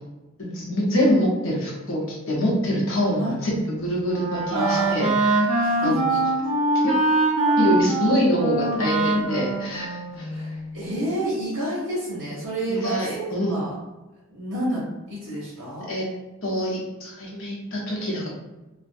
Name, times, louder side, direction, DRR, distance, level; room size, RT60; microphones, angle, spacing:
voice 1, 0.4-3.5 3.8-6.0 6.8-7.0 7.6-10.5 12.7-13.6 15.9-16.1 16.4-18.3, equal, 70° left, -3 dB, 0.8 m, -25 dB
Wind instrument woodwind instrument, 3.6-10.7, right 2 dB, 30° right, 0.6 m, -23 dB
voice 2, 4.5-5.1 5.6-6.0 10.3-13.2 13.5-13.7 14.3-14.8 15.1-15.9, right 1 dB, 70° right, -9 dB, 0.9 m, -29 dB
2.4 x 2.1 x 2.5 m, 1.0 s
head